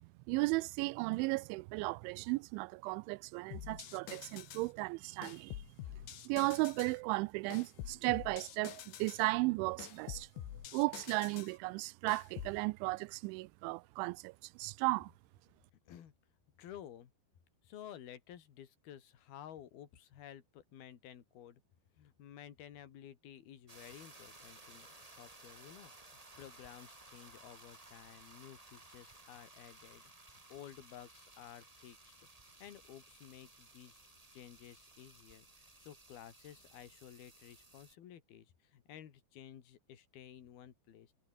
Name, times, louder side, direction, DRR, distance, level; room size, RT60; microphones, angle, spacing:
voice 1, 0.0-5.6 6.3-10.3 10.7-15.1, right 24 dB, 90° right, 3.0 m, -35 dB
sound 1, 3.5-4.7 5.2-7.0 7.5-9.3 9.8-11.6 12.1-12.6, left 11 dB, 75° left, 4.3 m, -47 dB
voice 2, 16.6-17.1 17.6-21.6 22.0-30.0 30.5-32.3 32.6-34.0 34.3-41.1, left 10 dB, 60° left, 4.1 m, -53 dB
sound 2, 23.7-37.9, right 2 dB, 30° right, 0.6 m, -58 dB
omnidirectional pair, 5.3 m